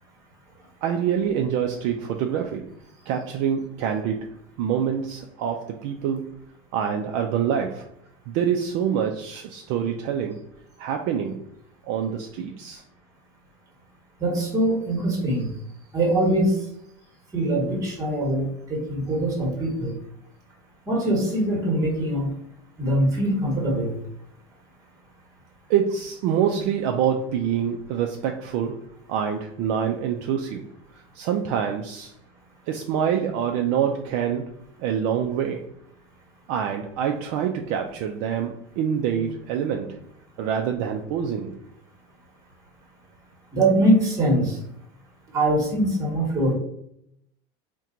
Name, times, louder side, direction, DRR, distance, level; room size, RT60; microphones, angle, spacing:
voice 1, 0.8-2.7 3.1-4.3 4.6-6.4 6.7-7.9 8.3-10.4 10.8-11.4 11.9-12.8 25.7-28.8 29.1-30.7 31.1-32.1 32.7-34.5 34.8-35.7 36.5-40.0 40.4-41.5, right 8 dB, 55° right, 3 dB, 0.4 m, -26 dB
voice 2, 14.2-15.5 15.9-16.6 17.3-19.9 20.9-22.3 22.8-24.0 43.5-44.6 45.3-46.5, right 1 dB, 20° right, 0 dB, 1.2 m, -22 dB
4.4 x 2.2 x 3.7 m, 0.72 s
cardioid pair, 165°, 16 cm